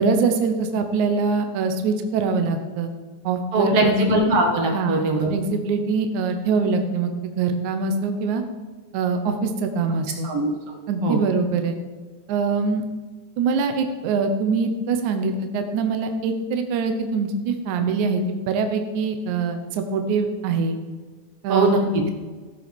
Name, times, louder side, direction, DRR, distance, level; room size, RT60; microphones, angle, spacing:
voice 1, 0.0-2.9 3.2-4.0 4.7-8.4 8.9-10.3 10.9-11.8 12.3-12.8 13.4-20.8 21.4-21.7, right 4 dB, 70° right, 7 dB, 2.2 m, -23 dB
voice 2, 3.5-5.3 10.2-10.5 11.0-11.2 21.5-22.0, right 2 dB, 55° right, 2 dB, 2.3 m, -20 dB
15.5 x 6.7 x 5.2 m, 1.4 s
omnidirectional pair, 3.7 m